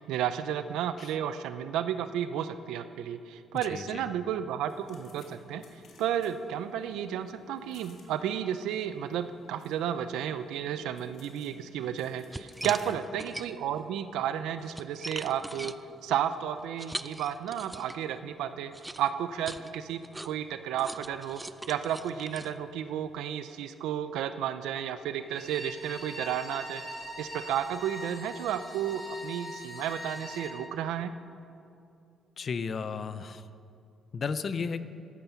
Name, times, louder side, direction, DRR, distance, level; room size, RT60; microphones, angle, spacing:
voice 1, 0.0-5.6 6.0-15.7 16.0-18.7 19.0-21.4 21.7-26.8 27.2-31.1, right 9 dB, 90° right, 11 dB, 0.4 m, -32 dB
voice 2, 3.7-4.0 12.6-12.7 32.4-33.4 34.1-34.8, left 5 dB, 50° left, 13 dB, 0.5 m, -34 dB
sound 1, 4.7-12.9, left 1 dB, 75° left, 1.9 m, -57 dB
sound 2, 11.8-11.9 12.3-13.8 14.3-18.1 18.7-23.2, right 1 dB, 10° right, 0.3 m, -42 dB
Bowed string instrument, 25.2-30.6, equal, 25° left, 2.3 m, -42 dB
12.5 x 9.4 x 5.7 m, 2.5 s
cardioid pair, 90°, 0 cm